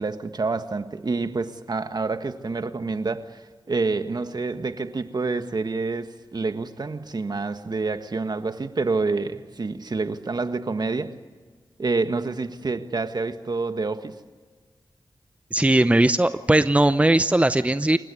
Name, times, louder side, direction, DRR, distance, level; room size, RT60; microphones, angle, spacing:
voice 1, 0.0-11.1 11.8-14.2, right 3 dB, 55° right, 1.6 m, -28 dB
voice 2, 15.5-18.0, right 1 dB, 15° right, 0.8 m, -19 dB
28.0 x 16.5 x 9.6 m
cardioid pair, 55°, 9 cm